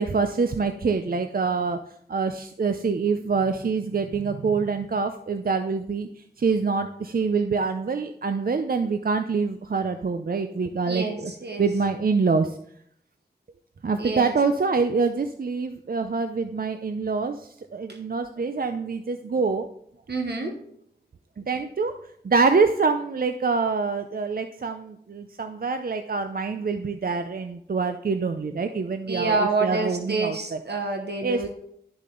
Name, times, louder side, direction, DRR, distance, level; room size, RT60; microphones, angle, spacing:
voice 1, 0.0-1.8 2.1-11.3 11.6-12.6 13.8-19.7 21.4-21.9 22.2-30.6 31.2-31.5, right 4 dB, 60° right, 8 dB, 0.5 m, -25 dB
voice 2, 10.8-11.6 14.0-14.3 17.9-18.0 20.1-20.6 29.1-31.5, right 3 dB, 85° right, 3 dB, 1.0 m, -27 dB
12.0 x 6.6 x 3.8 m, 0.71 s
wide cardioid pair, 65°, 17 cm